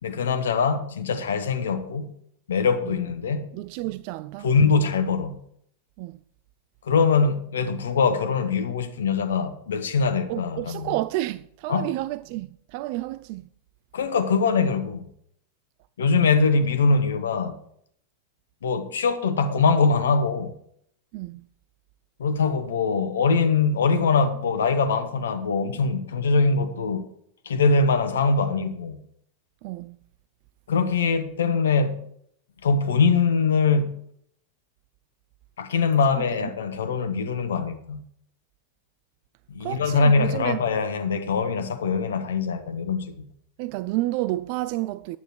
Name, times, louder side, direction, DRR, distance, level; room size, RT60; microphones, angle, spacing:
voice 1, 0.0-2.1 2.5-3.5 4.4-5.4 6.8-10.9 11.7-11.9 13.9-15.1 16.0-17.5 18.6-20.5 22.2-27.0 27.4-29.0 30.7-32.1 32.6-34.0 35.6-38.0 39.5-43.1, left 4 dB, 65° left, 1.2 m, -22 dB
voice 2, 3.5-4.5 6.0-6.2 10.3-13.4 21.1-21.5 29.6-30.0 36.2-36.5 39.6-40.6 43.6-45.2, right 17 dB, 45° right, 0.3 m, -30 dB
11.0 x 9.3 x 4.6 m
figure-of-eight pair, 90°, 0 cm